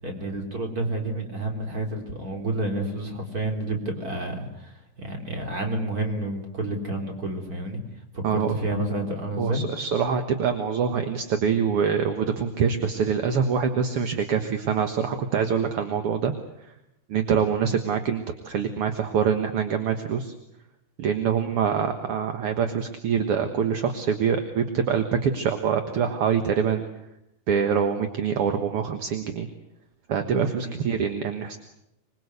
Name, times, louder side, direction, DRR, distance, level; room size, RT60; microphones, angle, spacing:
voice 1, 0.0-7.8 8.1-9.6 17.2-17.4 30.6-30.8, right 1 dB, 25° right, 3 dB, 4.1 m, -30 dB
voice 2, 9.4-16.3 16.6-16.7 17.1-20.3 21.0-26.8 27.5-29.5 30.1-31.6, right 7 dB, 55° right, 7 dB, 2.0 m, -25 dB
26.0 x 22.0 x 8.2 m, 0.83 s
omnidirectional pair, 3.8 m